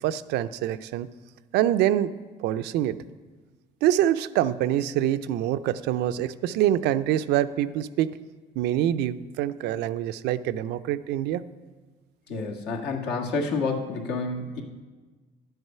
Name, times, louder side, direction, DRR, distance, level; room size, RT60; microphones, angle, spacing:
voice 1, 0.0-1.1 1.5-2.1 2.4-3.0 3.8-8.1 8.6-11.4, right 12 dB, 85° right, 13 dB, 0.5 m, -25 dB
voice 2, 12.3-14.6, left 3 dB, 75° left, 1 dB, 1.6 m, -29 dB
11.0 x 8.0 x 5.6 m, 1.3 s
cardioid pair, 110°, 17 cm